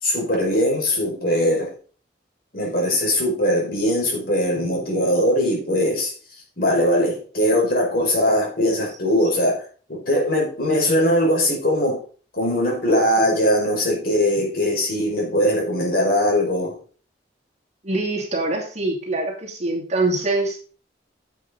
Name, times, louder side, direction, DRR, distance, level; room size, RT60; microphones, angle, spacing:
voice 1, 0.0-1.7 2.5-6.1 6.6-9.6 9.9-12.0 12.4-16.7, equal, 55° left, 5.1 m, -20 dB
voice 2, 17.8-20.6, right 2 dB, 40° right, 2.7 m, -24 dB
10.5 x 8.1 x 3.9 m
head